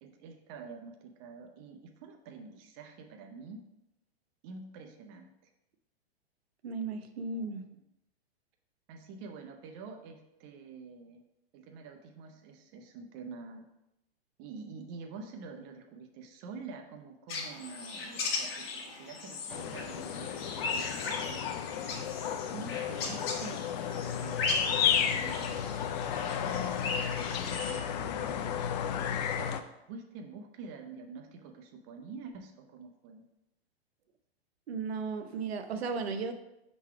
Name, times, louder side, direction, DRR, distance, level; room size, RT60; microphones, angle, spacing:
voice 1, 0.0-3.6 4.4-5.5 7.3-7.7 8.9-11.2 11.5-13.6 14.4-20.9 21.3-21.4 22.5-23.7 24.1-25.8 27.5-28.1 28.8-29.6 29.9-33.2 35.3-35.5, right 4 dB, 30° right, 4 dB, 0.6 m, -47 dB
voice 2, 6.6-7.6 34.7-36.3, right 4 dB, 75° right, 7 dB, 0.8 m, -35 dB
sound 1, 17.3-27.8, left 3 dB, 65° left, 1.4 m, -38 dB
sound 2, 19.5-29.6, left 9 dB, 45° left, 0.5 m, -33 dB
5.6 x 4.0 x 4.7 m, 0.86 s
hypercardioid pair, 145°, 31 cm